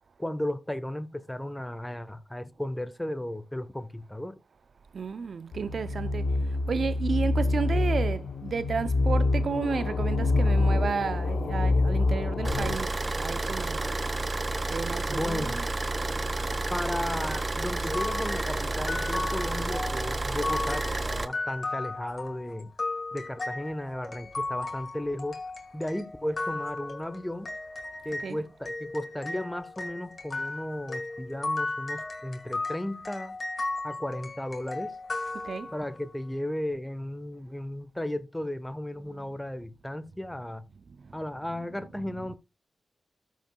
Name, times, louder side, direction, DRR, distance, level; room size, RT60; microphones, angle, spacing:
voice 1, 0.2-4.4 15.1-15.6 16.7-20.9 21.1-22.7 23.1-25.4 25.7-27.5 28.0-33.4 33.8-35.0 35.7-40.6 41.1-42.4, left 1 dB, 10° left, 1.1 m, -35 dB
voice 2, 4.9-14.0 14.7-15.7 28.2-28.5 35.3-35.8 39.0-39.3 41.0-41.2 41.7-42.4, right 5 dB, 70° right, 0.5 m, -33 dB
sound 1, 5.5-12.7, left 2 dB, 80° left, 0.8 m, -26 dB
Car / Idling, 12.4-21.3, right 2 dB, 35° right, 0.9 m, -30 dB
sound 2, 17.9-28.3 28.7-36.0, left 2 dB, 50° left, 2.1 m, -35 dB
13.5 x 6.3 x 2.3 m
supercardioid pair, 40°, 0 cm